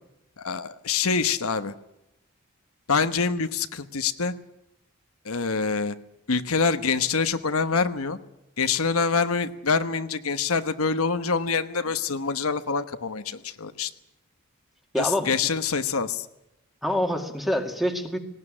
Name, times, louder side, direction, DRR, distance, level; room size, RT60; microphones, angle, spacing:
voice 1, 0.4-1.7 2.9-4.3 5.2-5.9 6.3-8.2 8.6-13.9 15.0-16.2, left 5 dB, 75° left, 10 dB, 1.1 m, -25 dB
voice 2, 14.9-15.3 16.8-18.2, equal, ahead, 5 dB, 2.1 m, -26 dB
19.0 x 18.0 x 10.0 m, 0.88 s
head